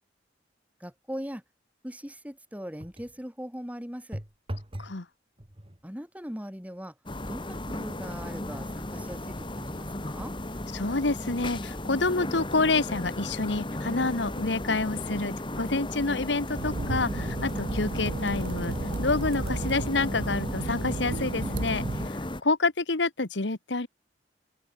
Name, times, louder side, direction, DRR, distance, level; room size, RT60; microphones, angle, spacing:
voice 1, 0.8-1.4 1.8-4.2 5.8-6.9 7.2-10.3, equal, 10° right, 4.4 m, -40 dB
sound 1, 2.8-3.2 4.1-5.0 5.4-5.9 6.6-6.8 7.1-10.7 11.2-11.3 12.0-14.7 16.9-17.4 18.1-18.2 18.5-18.6, right 1 dB, 30° right, 2.5 m, -45 dB
sound 2, 7.1-22.4, left 1 dB, 25° left, 2.3 m, -35 dB
voice 2, 10.7-22.2 22.4-23.9, left 3 dB, 85° left, 1.5 m, -28 dB
sound 3, 16.5-22.1, right 3 dB, 70° right, 0.7 m, -33 dB
head